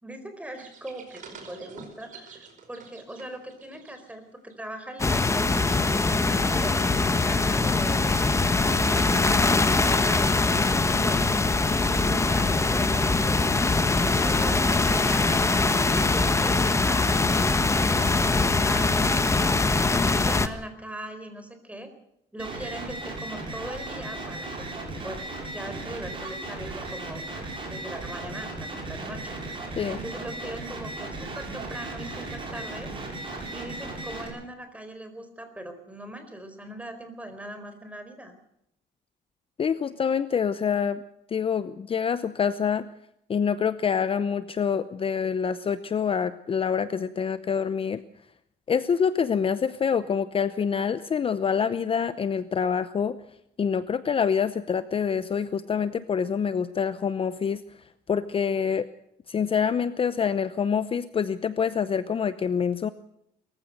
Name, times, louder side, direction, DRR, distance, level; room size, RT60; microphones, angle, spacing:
voice 1, 0.0-5.6 6.0-8.3 8.6-11.3 12.0-19.4 19.7-21.9 22.3-24.6 25.0-25.2 25.5-27.3 27.7-29.4 29.9-32.9 33.5-38.3, right 1 dB, 10° right, 8 dB, 4.4 m, -40 dB
sound 1, 0.5-4.2 4.5-4.8 7.1-7.2, right 5 dB, 50° right, 5.1 m, -48 dB
sound 2, 5.0-20.5, left 3 dB, 15° left, 1.3 m, -22 dB
sound 3, 22.4-34.3, right 2 dB, 30° right, 6.6 m, -36 dB
voice 2, 39.6-41.0 41.3-42.9 43.3-48.0 48.7-53.2 53.6-57.6 58.1-58.9 59.3-62.9, left 7 dB, 35° left, 14 dB, 0.8 m, -26 dB
22.0 x 15.0 x 7.9 m, 0.77 s
cardioid pair, 110°, 17 cm